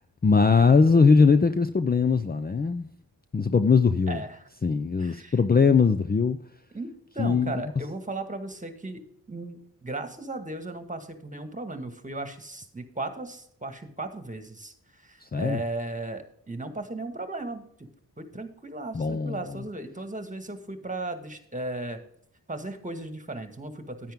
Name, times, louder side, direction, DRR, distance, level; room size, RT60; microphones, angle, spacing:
voice 1, 0.2-2.9 3.3-4.2 4.6-6.4 7.2-7.5 15.2-15.6 18.9-19.4, left 5 dB, 25° left, 10 dB, 0.6 m, -20 dB
voice 2, 4.1-4.5 5.0-5.4 6.7-17.9 18.2-22.0 22.5-24.1, right 2 dB, 20° right, 7 dB, 1.8 m, -36 dB
10.0 x 9.2 x 3.7 m, 0.67 s
supercardioid pair, 45°, 41 cm